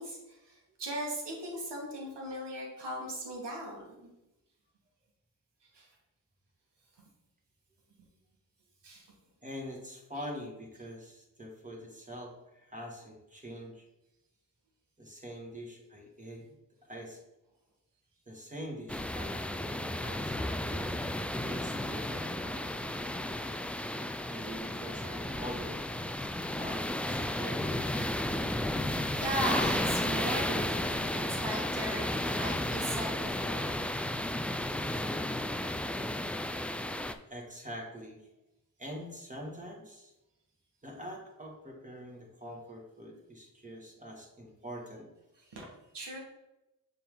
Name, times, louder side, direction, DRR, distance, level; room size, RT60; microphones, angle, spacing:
voice 1, 0.0-3.8 5.7-5.9 8.8-9.1 29.2-33.7 45.5-45.7 45.9-46.2, right 1 dB, 70° right, -1 dB, 1.9 m, -38 dB
voice 2, 9.4-13.8 15.0-16.5 16.9-17.2 18.3-20.9 21.4-22.7 24.3-25.9 26.4-27.9 37.3-38.2 38.8-40.1 40.8-45.1, equal, 20° right, -1 dB, 2.1 m, -44 dB
sound 1, 18.9-37.1, left 1 dB, 5° left, 0.3 m, -33 dB
6.6 x 3.9 x 3.9 m, 0.93 s
cardioid pair, 45°, 43 cm